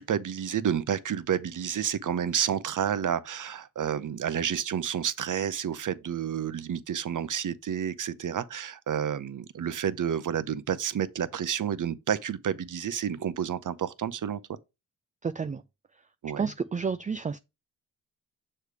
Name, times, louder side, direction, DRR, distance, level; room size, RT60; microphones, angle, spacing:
voice 1, 0.0-14.4 16.2-16.5, right 8 dB, 50° right, 0.7 m, -30 dB
voice 2, 15.2-15.6 16.4-17.4, right 5 dB, 20° right, 0.4 m, -30 dB
6.5 x 3.3 x 4.8 m
supercardioid pair, 40°, 39 cm